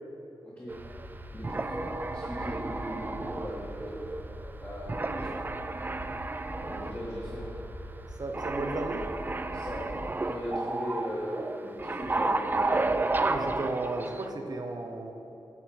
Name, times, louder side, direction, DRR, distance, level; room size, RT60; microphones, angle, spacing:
sound 1, 0.7-1.1 1.4-4.5 4.9-7.1 7.4-7.5 8.3-14.3, right 2 dB, 25° right, 0.3 m, -32 dB
sound 2, 0.7-10.1, equal, 75° right, 1.0 m, -44 dB
voice 1, 1.3-4.0 4.6-5.4 6.6-7.5 9.5-10.0 10.2-13.0, equal, 25° left, -9 dB, 1.9 m, -38 dB
voice 2, 5.1-5.4 8.2-9.1 13.2-15.1, right 2 dB, 50° right, 3 dB, 0.9 m, -34 dB
8.5 x 4.2 x 7.2 m, 3.0 s
wide cardioid pair, 105°, 9 cm